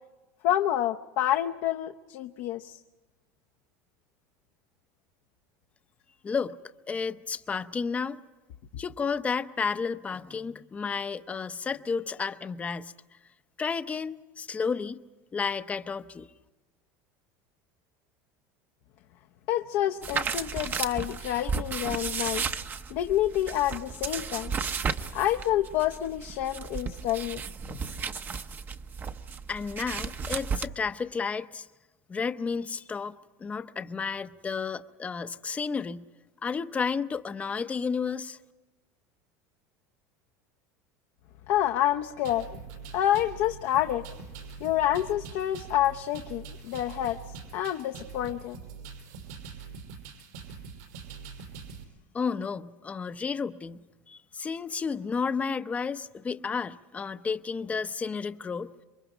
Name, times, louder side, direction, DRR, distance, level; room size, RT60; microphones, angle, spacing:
voice 1, 0.4-2.8 19.5-22.5 22.9-24.5 25.1-27.4 41.5-42.5 42.9-44.0 44.6-48.6, left 12 dB, 60° left, 4 dB, 0.8 m, -28 dB
voice 2, 6.2-6.6 6.9-8.2 8.8-12.9 13.6-15.0 15.3-16.3 29.5-31.7 32.1-36.1 36.4-38.4 52.1-58.7, left 5 dB, 15° left, 12 dB, 0.7 m, -32 dB
sound 1, 20.0-30.7, right 5 dB, 25° right, 0.8 m, -34 dB
sound 2, 42.2-51.8, right 5 dB, 85° right, 5.1 m, -44 dB
27.5 x 23.5 x 5.1 m, 1.2 s
cardioid pair, 150°, 8 cm